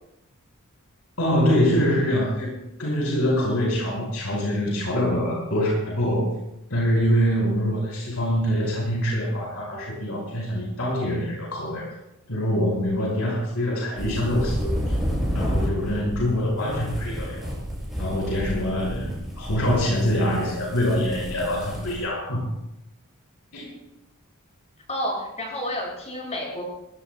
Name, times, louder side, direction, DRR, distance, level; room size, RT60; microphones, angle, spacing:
voice 1, 1.2-6.3 6.7-12.0 12.3-15.0 15.3-17.5 18.0-22.5 23.5-23.7, equal, 80° left, -3 dB, 5.3 m, -24 dB
sound 1, 13.9-22.1, equal, ahead, 7.0 m, -30 dB
voice 2, 24.9-26.6, left 1 dB, 30° left, -2 dB, 6.7 m, -30 dB
21.5 x 17.0 x 2.3 m, 0.87 s
head